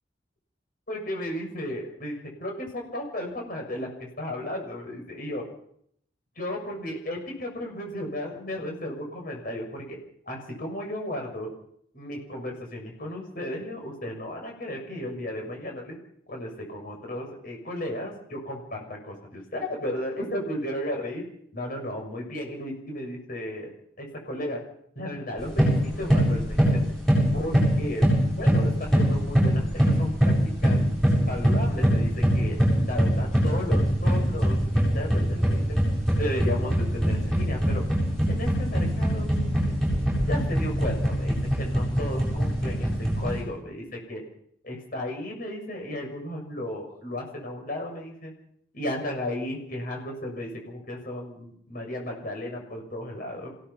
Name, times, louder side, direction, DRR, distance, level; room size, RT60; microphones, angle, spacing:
voice 1, 0.9-3.9 4.2-5.4 6.4-10.0 10.3-11.5 11.9-16.0 16.3-21.2 21.5-24.6 24.9-26.6 27.3-28.1 28.4-30.8 31.3-35.8 36.1-37.8 38.3-39.7 40.3-44.2 44.6-48.3 48.7-53.5, left 1 dB, 45° left, 1 dB, 6.7 m, -34 dB
sound 1, 25.4-43.4, equal, ahead, 7.8 m, -23 dB
27.0 x 17.0 x 5.7 m, 0.70 s
head